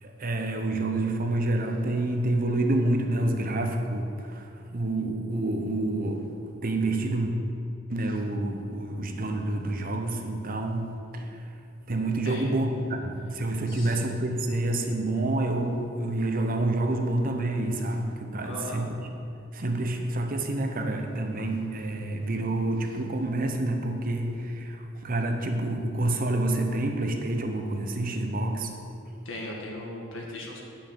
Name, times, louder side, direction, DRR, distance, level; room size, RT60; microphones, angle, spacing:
voice 1, 0.0-6.4 6.6-7.3 7.9-11.5 11.9-18.9 19.5-28.8, right 2 dB, 45° right, 4 dB, 0.8 m, -28 dB
voice 2, 18.4-18.9 29.3-30.6, left 1 dB, 85° left, -1 dB, 1.8 m, -37 dB
9.3 x 5.6 x 6.9 m, 2.6 s
head